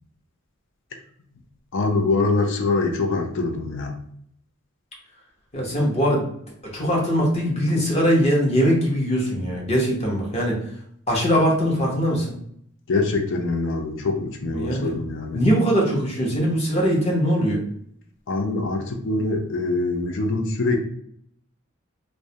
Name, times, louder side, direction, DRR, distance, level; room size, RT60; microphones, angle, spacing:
voice 1, 1.7-4.0 12.9-15.4 18.3-20.8, left 3 dB, 60° left, 4 dB, 0.4 m, -24 dB
voice 2, 5.5-6.3 6.6-10.6 11.1-12.4 14.5-14.9 15.3-17.6, equal, 30° left, -2 dB, 0.8 m, -21 dB
2.3 x 2.0 x 2.7 m, 0.67 s
head